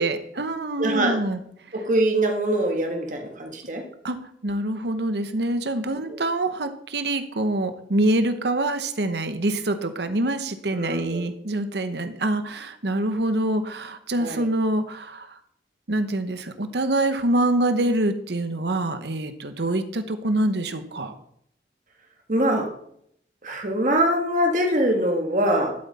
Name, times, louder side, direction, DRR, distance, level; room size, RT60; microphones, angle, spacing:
voice 1, 0.0-1.4 4.0-4.2 4.4-15.3 15.9-21.1, right 1 dB, 75° right, 9 dB, 1.1 m, -25 dB
voice 2, 0.8-1.2 1.7-3.8 6.1-6.2 10.7-11.2 14.2-14.5 22.3-22.7 23.4-25.7, right 1 dB, 45° right, 3 dB, 1.6 m, -23 dB
12.0 x 8.2 x 4.2 m, 0.69 s
head